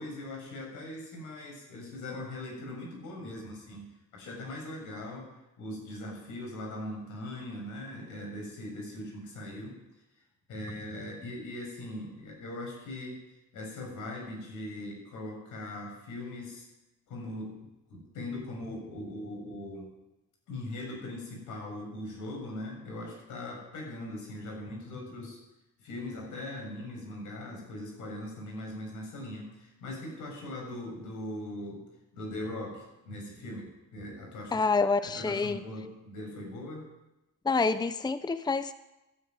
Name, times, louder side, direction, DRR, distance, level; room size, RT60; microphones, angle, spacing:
voice 1, 0.0-3.8 4.1-5.3 5.6-9.8 10.5-13.2 13.5-16.7 17.1-17.6 17.9-19.9 20.5-25.4 25.8-31.8 32.1-36.8, left 1 dB, 85° left, -1 dB, 7.4 m, -40 dB
voice 2, 34.5-35.6 37.4-38.7, left 4 dB, 15° left, 12 dB, 0.7 m, -27 dB
15.0 x 9.8 x 9.5 m, 0.96 s
cardioid pair, 90°, 30 cm